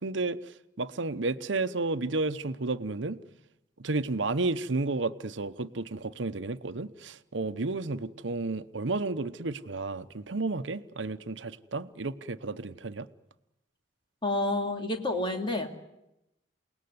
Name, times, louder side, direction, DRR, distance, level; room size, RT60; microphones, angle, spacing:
voice 1, 0.0-3.2 3.8-13.1, right 3 dB, 80° right, 11 dB, 0.9 m, -32 dB
voice 2, 14.2-15.7, left 2 dB, 25° left, 4 dB, 2.7 m, -29 dB
28.5 x 19.0 x 9.6 m, 0.90 s
head